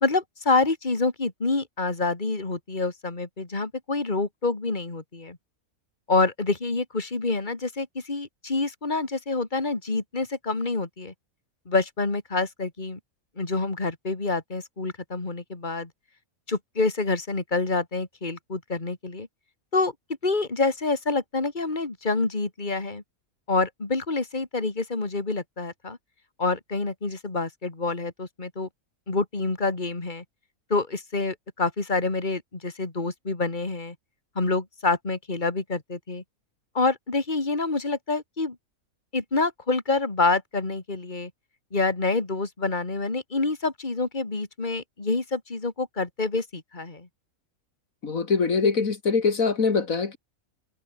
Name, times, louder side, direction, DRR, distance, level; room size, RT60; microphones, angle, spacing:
voice 1, 0.0-5.4 6.1-11.1 11.7-13.0 13.4-15.9 16.5-19.3 19.7-19.9 20.2-23.0 23.5-26.0 26.4-28.7 29.1-30.2 30.7-33.9 34.3-36.2 36.7-38.6 39.1-41.3 41.7-47.1, left 3 dB, 35° left, 2.9 m, -27 dB
voice 2, 48.0-50.2, left 5 dB, 70° left, 2.5 m, -23 dB
omnidirectional pair, 1.5 m